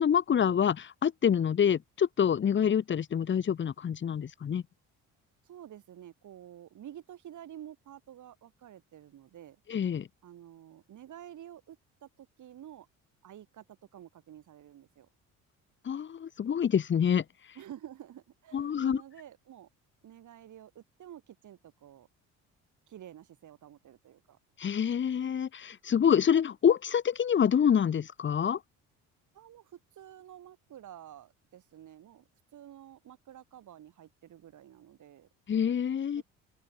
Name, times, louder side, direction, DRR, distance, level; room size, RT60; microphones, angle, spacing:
voice 1, 0.0-4.6 9.7-10.1 15.8-17.2 18.5-19.0 24.6-28.6 35.5-36.2, left 8 dB, 35° left, 1.0 m, -26 dB
voice 2, 5.4-9.6 10.2-12.9 13.2-15.1 17.6-19.7 20.0-22.1 22.9-24.4 29.3-35.3 36.2-36.3, right 11 dB, 60° right, 5.3 m, -50 dB
open air
supercardioid pair, 85°, 34 cm